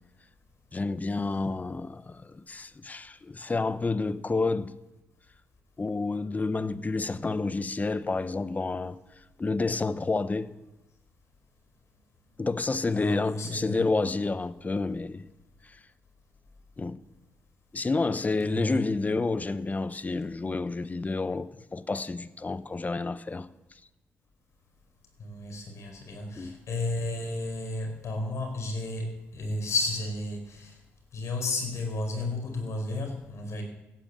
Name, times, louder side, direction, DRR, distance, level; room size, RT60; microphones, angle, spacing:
voice 1, 0.7-4.7 5.8-9.0 9.4-10.5 12.4-15.3 16.8-17.0 17.7-23.5 26.4-26.5, left 3 dB, 30° left, 0.9 m, -29 dB
voice 2, 12.9-13.8 18.4-18.8 25.2-30.8 31.1-33.6, left 2 dB, 65° left, 5.1 m, -32 dB
16.0 x 10.0 x 7.5 m
cardioid pair, 60°, 5 cm